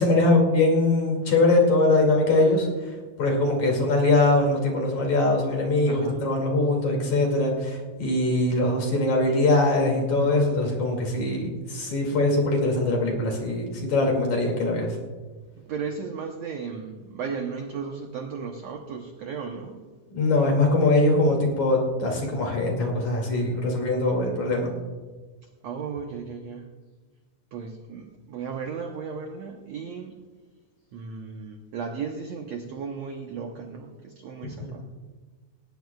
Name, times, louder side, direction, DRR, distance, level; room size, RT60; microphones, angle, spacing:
voice 1, 0.0-2.9 3.2-14.9 20.1-24.7 34.4-34.5, left 2 dB, 55° left, 0 dB, 3.6 m, -22 dB
voice 2, 5.9-6.2 15.6-19.8 25.6-26.7 27.5-30.2 30.9-34.9, right 5 dB, 70° right, 3 dB, 1.6 m, -35 dB
18.5 x 17.5 x 2.3 m, 1.4 s
omnidirectional pair, 4.2 m